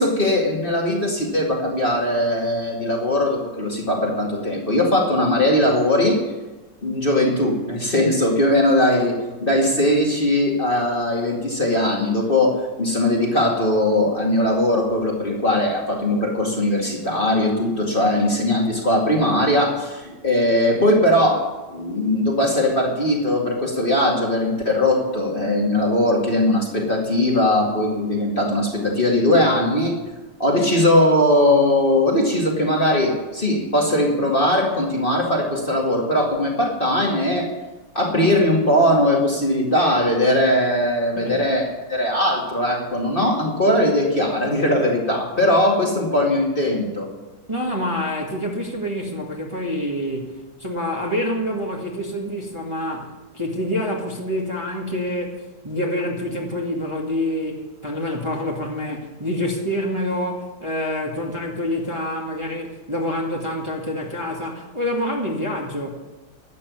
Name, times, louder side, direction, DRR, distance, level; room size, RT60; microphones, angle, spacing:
voice 1, 0.0-6.2 6.8-30.0 30.4-37.5 37.9-47.1, left 1 dB, 30° left, -1 dB, 2.4 m, -20 dB
voice 2, 47.5-50.3 50.6-65.9, left 1 dB, 15° right, -2 dB, 1.9 m, -27 dB
12.5 x 8.5 x 9.4 m, 1.1 s
omnidirectional pair, 2.0 m